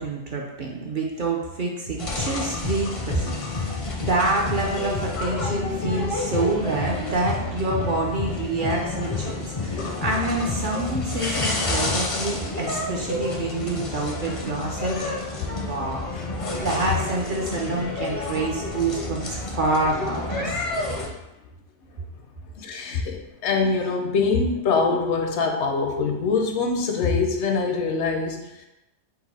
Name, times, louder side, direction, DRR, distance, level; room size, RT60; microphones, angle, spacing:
voice 1, 0.0-15.0 15.5-16.1 16.6-20.6, right 2 dB, 55° right, -1 dB, 0.6 m, -27 dB
sound 1, 2.0-21.1, left 3 dB, 40° left, 0.5 m, -29 dB
voice 2, 22.6-28.7, left 4 dB, 75° left, 3 dB, 0.9 m, -24 dB
4.0 x 2.5 x 4.1 m, 0.95 s
omnidirectional pair, 1.2 m